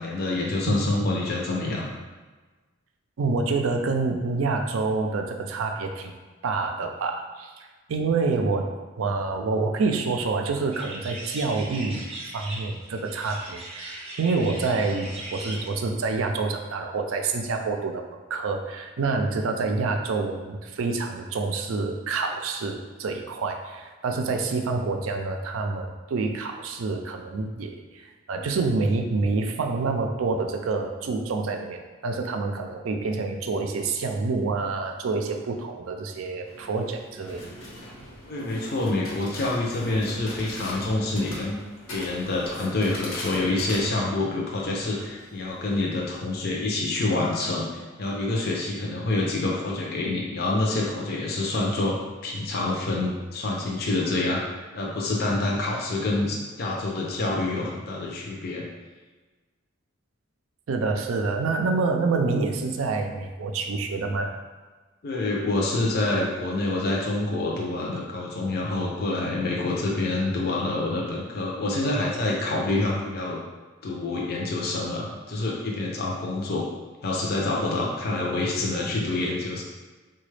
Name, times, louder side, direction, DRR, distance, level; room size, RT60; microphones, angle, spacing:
voice 1, 0.0-1.9 38.3-41.6 41.9-52.0 52.2-58.6 65.0-73.4 73.8-76.7 77.0-79.6, left 2 dB, 50° left, -2 dB, 0.5 m, -27 dB
voice 2, 3.2-6.2 6.4-7.5 7.9-8.7 9.0-12.1 12.3-18.0 18.3-37.4 60.7-64.3, right 3 dB, 80° right, 4 dB, 0.4 m, -27 dB
sound 1, 10.7-15.7, right 1 dB, 30° right, 0.5 m, -39 dB
sound 2, 36.4-46.5, left 1 dB, 85° left, 0.9 m, -41 dB
3.8 x 2.2 x 3.2 m, 1.3 s
head